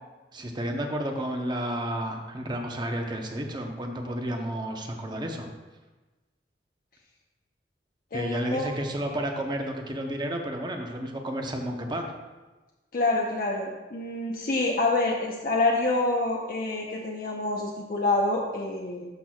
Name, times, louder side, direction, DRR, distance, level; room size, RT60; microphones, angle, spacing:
voice 1, 0.3-5.5 8.1-12.1, right 1 dB, 25° right, 3 dB, 0.8 m, -31 dB
voice 2, 8.1-8.7 12.9-19.1, left 2 dB, 55° left, -2 dB, 0.8 m, -27 dB
12.0 x 6.0 x 2.3 m, 1.2 s
head